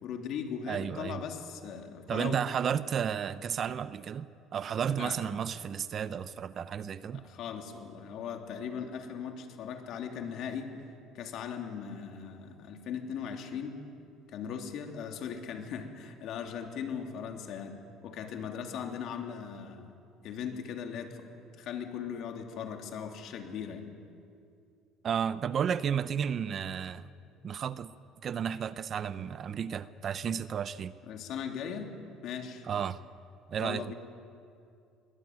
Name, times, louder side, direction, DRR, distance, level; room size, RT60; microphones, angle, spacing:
voice 1, 0.0-2.4 5.0-5.3 7.1-10.7 11.1-13.8 14.3-17.7 18.0-19.9 20.2-21.2 21.6-23.9 31.1-31.9 32.2-32.6 33.6-33.9, left 7 dB, 55° left, 4 dB, 3.0 m, -39 dB
voice 2, 0.7-1.2 2.1-4.3 4.5-7.2 25.0-27.1 27.4-27.9 28.2-30.9 32.7-33.0 33.5-33.9, right 8 dB, 40° right, 15 dB, 0.7 m, -32 dB
23.0 x 19.5 x 9.4 m, 2.4 s
cardioid pair, 135°, 0 cm